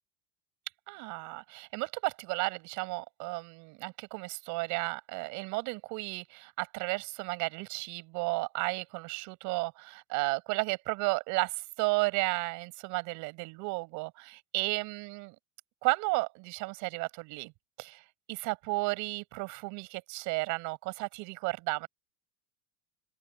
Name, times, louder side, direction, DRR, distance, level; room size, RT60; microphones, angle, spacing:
voice 1, 0.9-14.1 14.5-15.3 15.8-17.5 17.8-18.0 18.3-21.9, right 25 dB, 50° right, 7.2 m, -33 dB
open air
cardioid pair, 170°, 38 cm